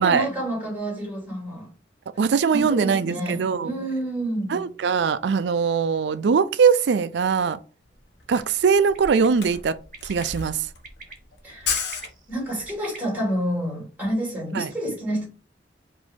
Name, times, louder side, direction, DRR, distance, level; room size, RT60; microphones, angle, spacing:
voice 1, 0.0-1.7 2.5-4.6 11.4-12.0 12.3-15.3, right 1 dB, 10° right, 2.5 m, -29 dB
voice 2, 2.2-3.7 4.5-7.6 8.3-9.8 10.0-10.6 14.5-14.7, right 6 dB, 70° right, 0.4 m, -21 dB
Camera, 7.9-8.0 8.2-12.7, left 5 dB, 65° left, 1.0 m, -33 dB
Bird, 8.9-9.3 9.9-10.2 10.8-11.1 11.6-13.0, right 3 dB, 50° right, 1.2 m, -42 dB
4.9 x 2.7 x 3.6 m
head